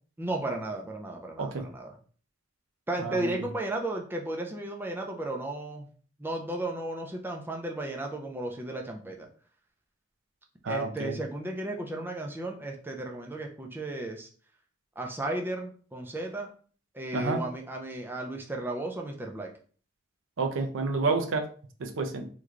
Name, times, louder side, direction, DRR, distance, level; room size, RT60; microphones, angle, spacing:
voice 1, 0.2-2.0 2.9-5.9 6.2-9.3 10.7-14.3 15.0-16.5 16.9-19.5, right 1 dB, 10° right, 1 dB, 0.4 m, -34 dB
voice 2, 3.0-3.4 10.6-11.1 17.1-17.4 20.4-21.5 21.8-22.3, right 3 dB, 75° right, 6 dB, 0.5 m, -29 dB
3.1 x 2.2 x 3.6 m, 0.43 s
head